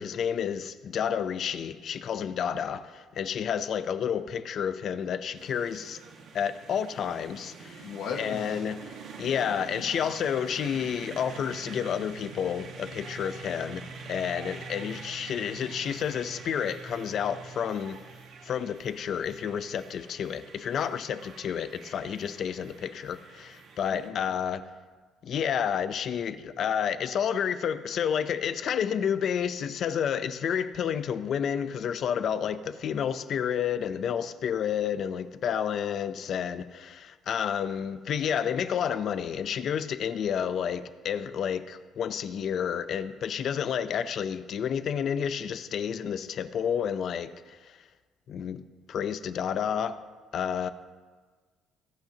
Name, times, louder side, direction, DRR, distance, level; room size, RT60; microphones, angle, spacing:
voice 1, 0.0-6.0 6.3-7.9 8.1-8.9 9.2-13.8 14.1-18.0 18.4-24.6 25.2-47.8 48.3-48.6 48.9-50.0 50.3-50.7, left 8 dB, 50° left, 0.6 m, -30 dB
sound 1, 5.4-24.1, right 5 dB, 60° right, 1.4 m, -45 dB
voice 2, 7.8-8.4 23.9-24.2, left 6 dB, 75° left, 1.5 m, -36 dB
20.0 x 9.1 x 2.9 m
cardioid pair, 145°, 0 cm